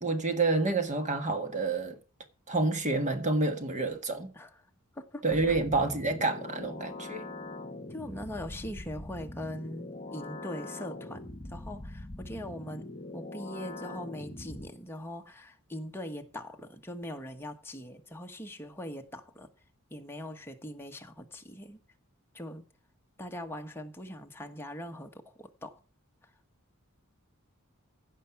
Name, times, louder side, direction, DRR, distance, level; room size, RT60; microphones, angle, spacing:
voice 1, 0.0-2.0 2.5-4.3 5.2-7.2, right 3 dB, 35° right, 1.5 m, -28 dB
voice 2, 5.0-5.6 7.9-19.5 19.9-21.8 22.3-22.6 23.2-25.8, left 1 dB, 10° left, 1.2 m, -41 dB
sound 1, 5.3-14.7, left 2 dB, 30° left, 1.4 m, -42 dB
15.5 x 5.7 x 5.8 m
head